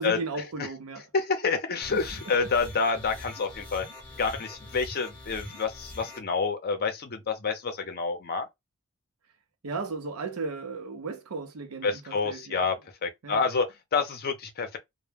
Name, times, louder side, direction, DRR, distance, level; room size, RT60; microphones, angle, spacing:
voice 1, 0.0-1.1 1.9-2.5 9.6-12.7 13.2-13.5, right 4 dB, 75° right, 0.6 m, -36 dB
voice 2, 1.1-3.9 4.2-8.5 11.8-12.8 13.0-14.8, left 4 dB, 45° left, 0.6 m, -28 dB
sound 1, 1.8-6.2, left 2 dB, 5° left, 0.7 m, -43 dB
2.1 x 2.1 x 3.2 m
head